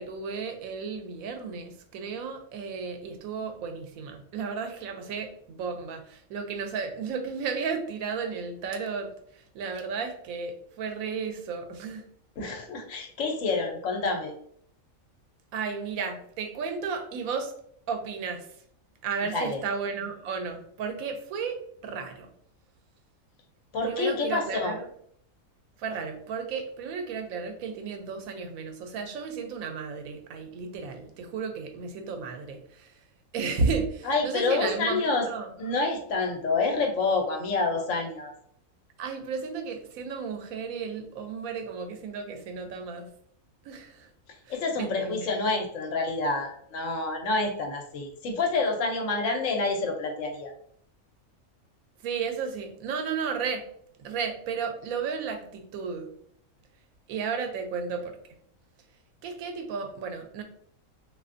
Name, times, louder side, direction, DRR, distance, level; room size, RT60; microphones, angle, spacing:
voice 1, 0.0-12.0 15.5-17.5 17.9-18.5 19.0-21.6 21.8-22.3 23.8-24.9 25.8-33.0 33.3-35.5 39.0-43.1 43.6-44.1 44.5-45.3 52.0-53.6 54.0-56.1 57.1-58.2 59.2-60.4, right 5 dB, 85° right, 5 dB, 1.0 m, -33 dB
voice 2, 12.4-14.3 19.3-19.6 23.7-24.7 34.1-35.3 35.6-38.3 44.5-50.5, left 3 dB, 70° left, 3 dB, 1.0 m, -28 dB
3.2 x 2.6 x 2.5 m, 0.65 s
omnidirectional pair, 1.4 m